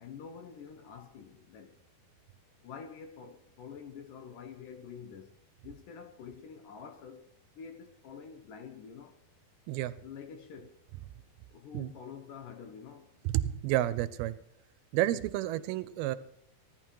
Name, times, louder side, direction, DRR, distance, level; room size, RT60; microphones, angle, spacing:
voice 1, 0.0-1.8 2.6-5.4 5.6-7.3 7.5-9.2 10.0-10.8 11.5-13.2, left 6 dB, 70° left, 2.1 m, -47 dB
voice 2, 13.2-14.4 14.9-16.2, right 14 dB, 80° right, 2.5 m, -30 dB
17.0 x 11.5 x 4.7 m
omnidirectional pair, 4.5 m